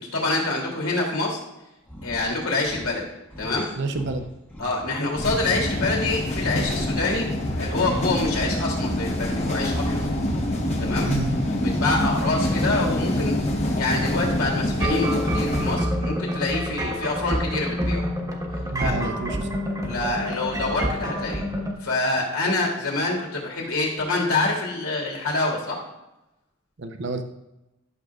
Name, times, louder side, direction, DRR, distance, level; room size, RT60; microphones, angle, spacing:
voice 1, 0.1-1.4 2.0-3.1 3.4-3.7 4.6-7.3 7.6-10.0 10.8-11.1 11.5-13.3 13.7-18.1 18.8-19.1 19.8-21.4 21.8-25.8, left 2 dB, 80° left, -2 dB, 2.9 m, -26 dB
sound 1, 1.8-2.3 2.6-3.0 3.3-5.7 6.1-8.0 9.4-10.8 12.2-13.3, equal, 10° left, 1.1 m, -43 dB
voice 2, 3.8-4.3 11.1-11.3 18.7-19.5 26.8-27.2, right 3 dB, 55° right, 6 dB, 0.7 m, -28 dB
sound 2, 5.2-15.8, left 1 dB, 30° left, 1.1 m, -25 dB
sound 3, 14.8-21.7, equal, 15° right, 1.2 m, -28 dB
12.0 x 6.7 x 2.4 m, 0.94 s
head